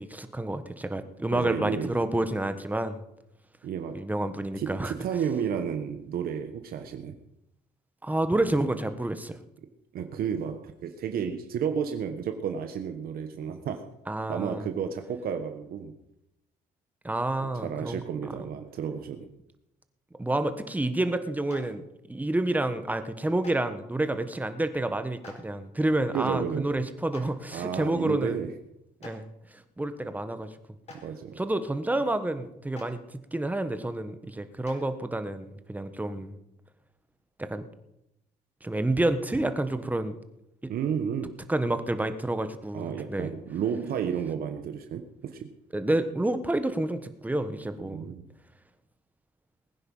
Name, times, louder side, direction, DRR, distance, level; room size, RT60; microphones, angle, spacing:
voice 1, 0.0-3.0 3.9-4.9 8.0-9.4 14.1-14.6 17.0-18.0 20.2-28.4 29.0-29.3 29.5-30.5 31.4-33.0 33.3-36.3 37.4-37.6 38.6-40.1 41.5-43.3 45.7-48.1, right 1 dB, 10° right, 10 dB, 1.4 m, -29 dB
voice 2, 1.3-1.9 3.6-4.0 4.5-7.1 9.9-13.8 14.3-15.9 17.4-19.3 26.1-26.7 27.5-28.5 29.0-29.1 31.0-31.4 40.7-41.3 42.7-45.5 47.8-48.2, right 7 dB, 60° right, 6 dB, 1.4 m, -32 dB
Clapping, 21.5-21.6 23.4-23.5 25.2-25.3 27.1-27.2 29.0-29.1 30.8-31.0 32.7-32.8 34.6-34.7, left 4 dB, 40° left, 4.8 m, -45 dB
20.5 x 9.8 x 5.6 m, 0.85 s
cardioid pair, 110°, 17 cm